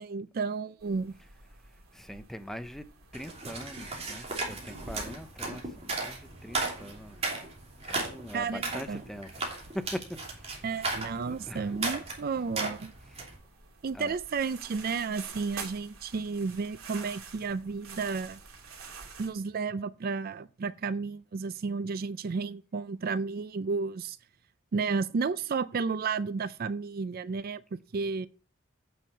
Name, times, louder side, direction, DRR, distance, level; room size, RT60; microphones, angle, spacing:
voice 1, 0.0-1.1 8.3-9.0 10.6-12.9 13.8-18.4 19.2-24.2 24.7-27.6 27.9-28.3, right 4 dB, 45° right, 0.4 m, -32 dB
sound 1, 0.8-19.3, right 5 dB, 85° right, 2.6 m, -50 dB
voice 2, 1.9-2.8 3.1-7.5 7.9-10.0 10.4-10.8 11.3-11.7 13.1-13.2 13.9-14.2, equal, ahead, 0.6 m, -42 dB
sound 2, 3.1-13.4, right 3 dB, 30° right, 2.8 m, -36 dB
9.0 x 6.3 x 5.7 m
head